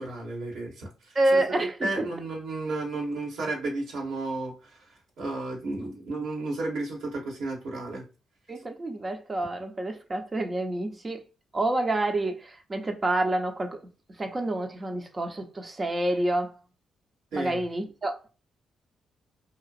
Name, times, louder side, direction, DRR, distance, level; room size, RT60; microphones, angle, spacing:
voice 1, 0.0-4.8 5.2-8.0 17.3-17.6, right 2 dB, 75° right, 1.3 m, -33 dB
voice 2, 1.1-2.1 8.5-11.2 11.5-13.9 14.2-16.5 17.3-18.3, right 1 dB, 35° right, 0.8 m, -28 dB
2.9 x 2.4 x 2.4 m
supercardioid pair, 50°, 0 cm